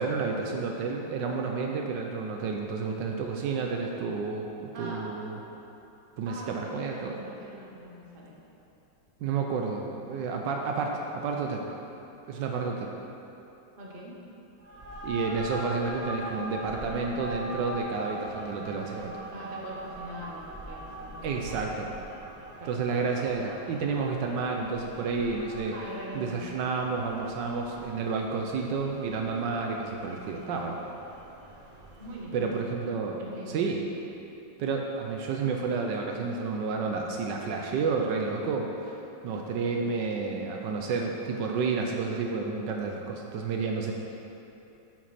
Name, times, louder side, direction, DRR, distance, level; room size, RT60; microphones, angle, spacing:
voice 1, 0.0-4.5 4.8-5.4 6.2-7.2 9.2-11.6 12.3-12.9 15.0-19.2 21.2-21.9 22.7-25.8 26.1-30.8 32.3-33.8 34.6-39.0 39.2-43.9, right 4 dB, 75° right, 1 dB, 1.3 m, -30 dB
voice 2, 4.7-5.2 6.2-8.3 13.8-14.1 19.3-21.7 22.4-22.9 25.7-26.4 32.0-32.7 33.2-33.6, right 1 dB, 35° right, -4 dB, 1.2 m, -42 dB
sound 1, 14.6-32.5, equal, 55° right, 0.4 m, -42 dB
9.1 x 6.1 x 4.2 m, 2.9 s
omnidirectional pair, 2.0 m